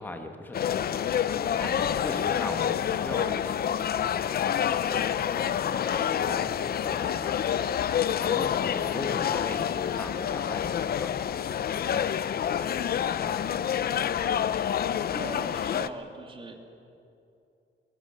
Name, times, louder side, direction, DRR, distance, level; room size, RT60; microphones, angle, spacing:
voice 1, 0.0-3.7 4.9-5.1 5.3-7.4 8.2-11.2 11.5-12.0 12.5-13.5, left 1 dB, 10° left, 5 dB, 1.4 m, -40 dB
sound 1, 0.5-15.9, left 9 dB, 50° left, 0.6 m, -28 dB
voice 2, 15.1-16.6, right 3 dB, 25° right, 4 dB, 2.3 m, -40 dB
23.0 x 19.5 x 7.7 m, 2.7 s
wide cardioid pair, 170°, 20 cm